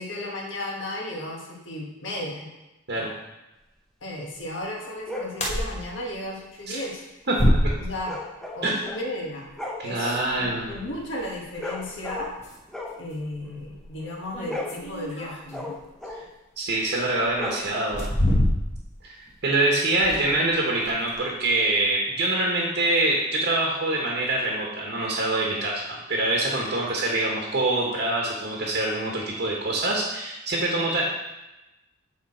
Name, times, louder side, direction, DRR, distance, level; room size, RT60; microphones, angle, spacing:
voice 1, 0.0-2.5 3.0-3.1 4.0-7.0 7.8-8.2 8.5-9.5 9.8-12.3 13.0-15.7, left 1 dB, 60° left, -1 dB, 1.4 m, -34 dB
sound 1, 5.0-5.4 8.0-9.1 9.4-12.4 12.7-13.9 14.3-16.4 17.3-18.1, left 2 dB, ahead, 0.6 m, -37 dB
sound 2, 5.3-5.7 6.1-6.2 7.3-8.1 10.8-10.9 12.0-12.1 12.4-12.6 13.1-13.2 14.3-15.7 16.8-16.9 17.7-19.0 19.3-19.4 19.9-20.5 20.8-21.2, left 1 dB, 35° left, 1.2 m, -25 dB
voice 2, 9.8-10.7 16.1-16.2 16.6-18.1 19.0-19.2 19.4-31.1, right 2 dB, 55° right, -2 dB, 1.2 m, -25 dB
8.1 x 4.3 x 4.3 m, 1.0 s
head